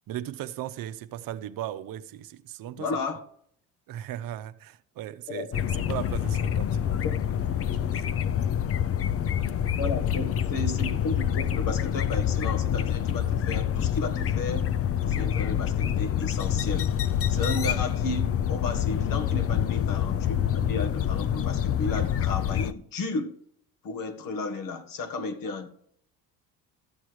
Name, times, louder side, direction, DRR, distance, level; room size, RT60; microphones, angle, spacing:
voice 1, 0.1-2.9 3.9-5.5 5.7-7.2 7.5-8.2 17.3-17.7, right 12 dB, 65° right, 0.8 m, -37 dB
voice 2, 2.8-3.2 5.3-5.5 7.0-7.2 9.7-14.7 15.1-16.9 17.3-23.3 23.8-25.7, left 3 dB, 60° left, 1.7 m, -33 dB
sound 1, 5.5-22.7, left 9 dB, 40° left, 0.6 m, -27 dB
13.5 x 7.6 x 4.8 m
supercardioid pair, 90°, 37 cm